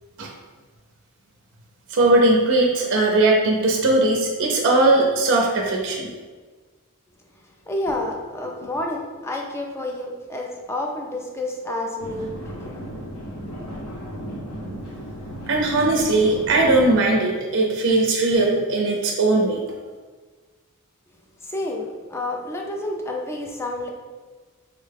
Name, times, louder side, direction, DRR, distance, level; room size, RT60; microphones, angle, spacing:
voice 1, 1.9-6.1 15.5-19.6, right 2 dB, 60° right, 0 dB, 0.5 m, -19 dB
voice 2, 7.7-12.8 21.4-23.9, left 1 dB, 10° left, 0 dB, 0.4 m, -29 dB
sound 1, 12.0-17.0, equal, 85° left, 0.8 m, -35 dB
3.9 x 2.1 x 3.3 m, 1.4 s
head